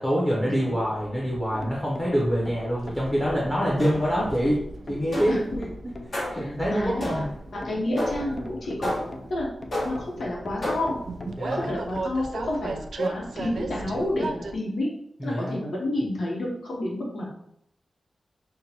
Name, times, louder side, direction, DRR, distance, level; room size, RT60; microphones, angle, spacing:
voice 1, 0.0-4.6 4.9-5.4 6.1-7.3 11.4-11.7 15.2-15.6, equal, 10° left, -5 dB, 0.8 m, -25 dB
Train, 0.8-14.6, right 3 dB, 80° right, 0.3 m, -38 dB
sound 1, 1.2-12.2, left 1 dB, 30° left, 0.3 m, -42 dB
sound 2, 3.8-4.3 5.1-5.5 6.1-6.5 7.0-7.5 8.0-8.4 8.8-9.3 9.7-10.2 10.6-11.1, left 1 dB, 55° left, 1.3 m, -31 dB
voice 2, 6.3-7.2 7.5-8.9 9.3-9.5 9.8-11.0 11.4-14.9 15.2-17.3, left 1 dB, 85° left, -3 dB, 0.9 m, -30 dB
5.7 x 2.2 x 2.8 m, 0.74 s
wide cardioid pair, 155°, 0 cm